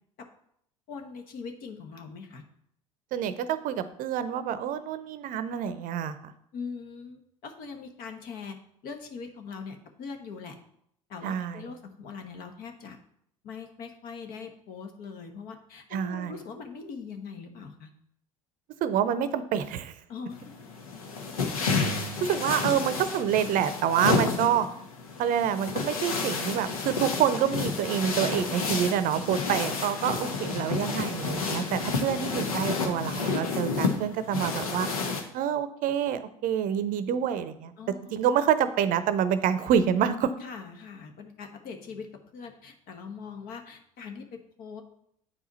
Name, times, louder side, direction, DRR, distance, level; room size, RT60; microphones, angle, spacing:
voice 1, 0.9-2.4 6.5-10.6 11.1-13.0 13.4-17.9 20.1-20.4 29.4-29.6 37.8-38.1 40.4-44.8, left 5 dB, 55° left, 5 dB, 1.2 m, -41 dB
voice 2, 3.1-6.3 11.2-11.7 15.9-16.3 18.8-20.0 21.9-24.7 25.2-34.9 35.3-37.7 38.1-40.3, right 9 dB, 50° right, 13 dB, 0.6 m, -27 dB
sound 1, 20.3-35.2, left 4 dB, 85° left, 1.0 m, -30 dB
8.6 x 4.9 x 4.0 m, 0.71 s
hypercardioid pair, 70°, 18 cm